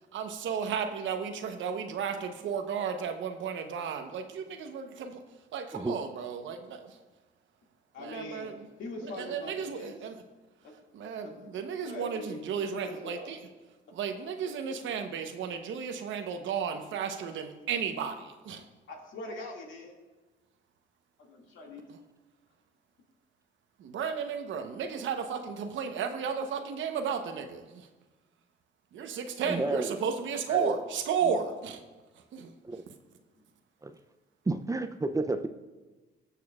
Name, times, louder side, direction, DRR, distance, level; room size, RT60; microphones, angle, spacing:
voice 1, 0.1-5.2 5.5-7.0 8.0-8.7 9.0-10.2 10.9-13.4 13.9-18.6 21.9-22.0 23.8-27.6 28.9-31.8 32.3-32.5, right 6 dB, 75° right, 7 dB, 0.9 m, -34 dB
voice 2, 7.9-8.5 8.8-9.9 10.6-10.7 11.2-11.3 11.9-12.4 12.7-13.3 18.9-19.9 21.2-21.8, left 1 dB, 75° left, 0 dB, 2.1 m, -42 dB
voice 3, 29.5-29.9 30.5-30.7 32.6-32.8 33.8-33.9 34.5-35.5, right 2 dB, 15° right, 8 dB, 0.5 m, -30 dB
20.0 x 6.8 x 2.4 m, 1.2 s
cardioid pair, 90°, 20 cm